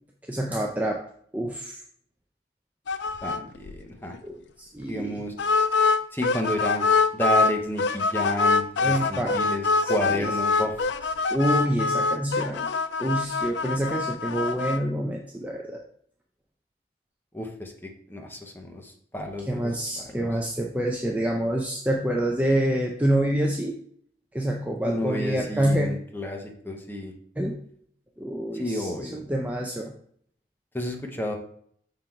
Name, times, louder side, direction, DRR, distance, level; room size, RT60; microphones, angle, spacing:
voice 1, 0.2-1.0 1.3-1.8 4.2-5.2 8.8-9.4 9.8-10.3 11.3-12.7 13.0-15.8 19.5-23.7 24.3-25.9 27.4-27.6 28.2-29.9, right 1 dB, 10° right, 0 dB, 0.5 m, -27 dB
sound 1, 2.9-3.4 3.7-3.8 4.1-4.2 5.4-7.5 7.8-14.8, left 4 dB, 85° left, 0.4 m, -24 dB
voice 2, 3.2-4.1 4.9-5.3 6.1-6.8 7.1-10.7 17.3-20.3 24.8-27.1 28.5-29.2 30.7-31.3, equal, 10° left, 2 dB, 0.8 m, -31 dB
5.7 x 3.9 x 4.4 m, 0.63 s
head